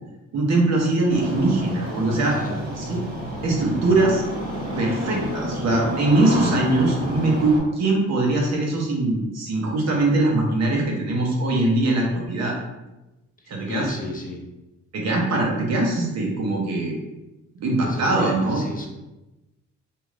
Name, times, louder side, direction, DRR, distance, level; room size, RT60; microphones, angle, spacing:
voice 1, 0.3-2.4 2.8-3.0 3.4-4.2 4.8-12.6 13.5-13.9 14.9-17.0 17.6-18.6, right 2 dB, 60° right, -1 dB, 0.9 m, -22 dB
Engine starting, 1.1-7.6, equal, 30° right, 1.2 m, -29 dB
voice 2, 2.2-2.6 13.4-14.4 17.8-18.9, left 2 dB, 30° left, 1 dB, 0.5 m, -33 dB
2.6 x 2.4 x 3.2 m, 1.0 s
cardioid pair, 90°, 30 cm